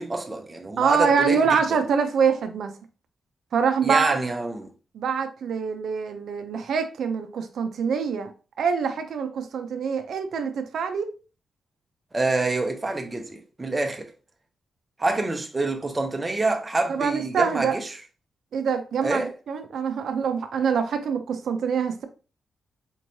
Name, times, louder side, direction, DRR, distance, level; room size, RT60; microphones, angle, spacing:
voice 1, 0.0-1.8 3.8-4.7 12.1-14.1 15.0-17.9 19.0-19.3, right 2 dB, 15° right, 0.6 m, -27 dB
voice 2, 0.8-2.7 3.5-4.2 4.9-8.3 8.6-11.1 16.9-17.8 18.5-22.0, right 6 dB, 65° right, 0.5 m, -25 dB
4.3 x 3.1 x 2.6 m
wide cardioid pair, 180°, 0 cm